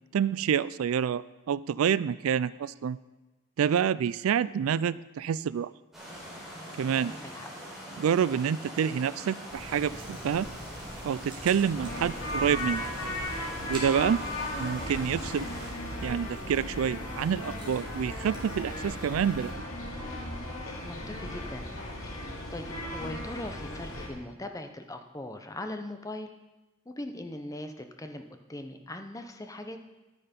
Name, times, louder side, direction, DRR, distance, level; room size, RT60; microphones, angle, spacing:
voice 1, 0.1-3.0 3.6-5.7 6.8-7.1 8.0-10.5 11.0-12.8 13.7-14.2 14.6-15.5 16.0-19.6, right 8 dB, 85° right, 19 dB, 0.3 m, -27 dB
sound 1, 5.9-15.7, equal, ahead, 4.1 m, -43 dB
voice 2, 7.1-7.5 20.8-21.7 22.1-26.3 26.9-28.2 28.5-29.8, left 1 dB, 15° left, 6 dB, 0.8 m, -40 dB
sound 2, 9.5-19.5, right 1 dB, 25° right, 2.8 m, -45 dB
sound 3, 11.7-24.1, left 1 dB, 90° left, 2.7 m, -36 dB
11.5 x 9.9 x 5.3 m, 1.1 s
head